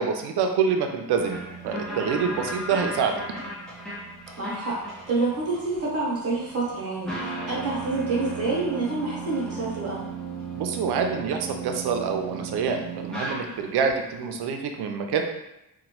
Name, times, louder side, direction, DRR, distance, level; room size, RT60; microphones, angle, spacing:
voice 1, 0.0-3.2 10.5-15.2, right 6 dB, 85° right, 4 dB, 0.5 m, -26 dB
sound 1, 1.2-13.9, right 3 dB, ahead, 0.5 m, -36 dB
voice 2, 4.4-4.8 5.1-10.0, right 3 dB, 40° right, -5 dB, 0.9 m, -27 dB
2.9 x 2.2 x 2.9 m, 0.88 s
wide cardioid pair, 150°, 38 cm